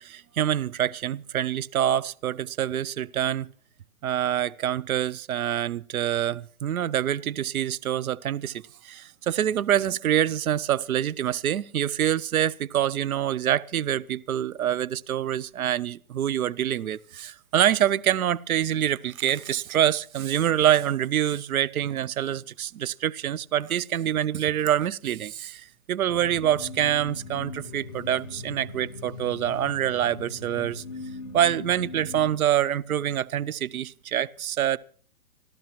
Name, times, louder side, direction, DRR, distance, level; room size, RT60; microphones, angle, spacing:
voice 1, 0.0-3.5 4.0-30.8 31.3-34.8, right 10 dB, 85° right, 0.6 m, -26 dB
sound 1, 26.1-32.3, left 3 dB, 25° left, 1.8 m, -40 dB
26.0 x 13.5 x 3.0 m
hypercardioid pair, 175°, 42 cm